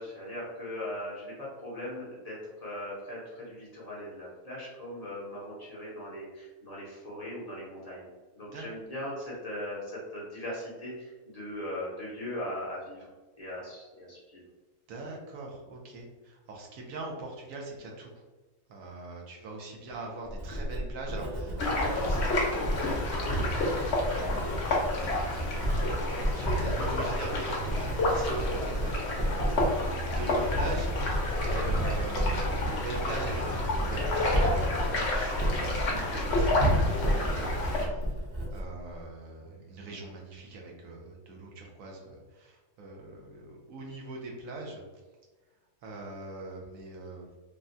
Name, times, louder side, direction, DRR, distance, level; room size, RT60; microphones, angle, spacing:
voice 1, 0.0-2.4 2.6-8.1 8.3-13.1 13.4-14.4, left 1 dB, 35° left, -7 dB, 0.7 m, -39 dB
voice 2, 14.9-18.1 18.7-38.2 38.5-44.8 45.8-47.3, right 2 dB, 75° right, 0 dB, 1.1 m, -42 dB
Writing, 20.2-39.1, equal, 55° right, 0.8 m, -33 dB
sound 1, 21.6-37.9, left 1 dB, 60° left, 0.8 m, -29 dB
3.4 x 2.2 x 2.6 m, 1.2 s
omnidirectional pair, 1.4 m